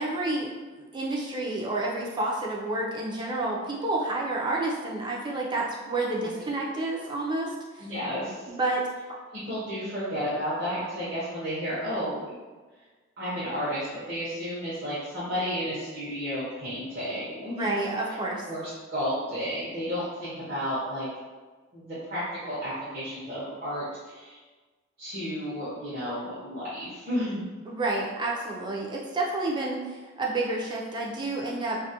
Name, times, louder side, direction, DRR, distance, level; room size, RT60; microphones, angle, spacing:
voice 1, 0.0-7.9 8.5-9.2 17.5-18.4 27.7-31.8, right 2 dB, 25° right, -2 dB, 0.3 m, -30 dB
voice 2, 7.8-8.5 9.3-12.3 13.2-17.7 18.5-21.1 21.7-24.4 25.0-27.4, equal, 50° right, -11 dB, 0.7 m, -32 dB
2.3 x 2.1 x 2.7 m, 1.3 s
head